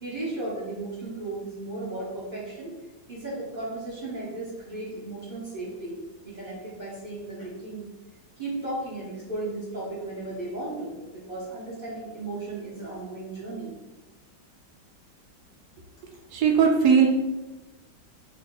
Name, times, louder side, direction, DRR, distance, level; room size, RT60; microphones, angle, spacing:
voice 1, 0.0-2.7 3.1-6.0 6.2-7.9 8.4-13.7, right 2 dB, 40° right, -8 dB, 0.6 m, -35 dB
voice 2, 16.3-17.1, right 6 dB, 70° right, 1 dB, 1.0 m, -18 dB
2.9 x 2.7 x 3.7 m, 1.1 s
omnidirectional pair, 2.2 m